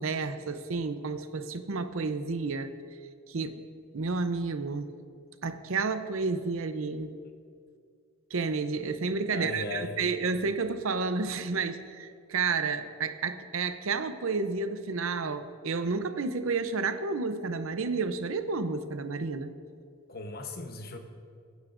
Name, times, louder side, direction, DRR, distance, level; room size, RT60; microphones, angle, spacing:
voice 1, 0.0-2.7 3.3-3.6 3.9-4.9 5.4-7.1 8.3-19.5, right 4 dB, 70° right, 10 dB, 0.6 m, -31 dB
voice 2, 9.3-10.0 20.1-21.0, left 3 dB, 45° left, 5 dB, 1.0 m, -37 dB
22.0 x 9.4 x 2.6 m, 2.3 s
head